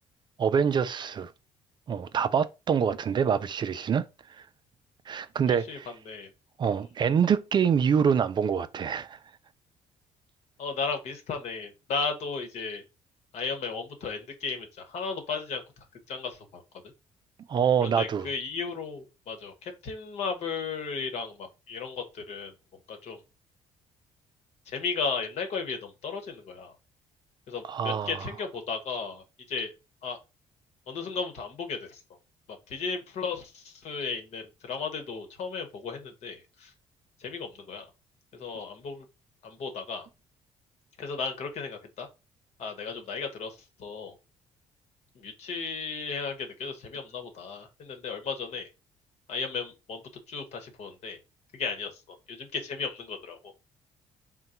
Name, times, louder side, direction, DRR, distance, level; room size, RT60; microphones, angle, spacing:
voice 1, 0.4-1.3 1.9-4.4 5.1-5.9 6.6-9.2 17.5-18.3 27.7-28.2, right 7 dB, 40° right, 0.3 m, -26 dB
voice 2, 5.5-5.8 6.1-6.3 10.6-12.8 13.3-15.6 16.1-16.6 17.8-22.5 22.9-23.2 24.7-26.7 27.5-29.7 30.0-30.2 30.9-32.0 32.7-36.7 37.2-37.9 38.3-39.1 39.4-40.1 41.0-42.1 42.6-44.1 45.1-48.7 49.3-50.0 50.3-51.2 51.5-53.5, left 5 dB, 65° left, 1.1 m, -35 dB
3.8 x 2.2 x 4.2 m
cardioid pair, 90°, 12 cm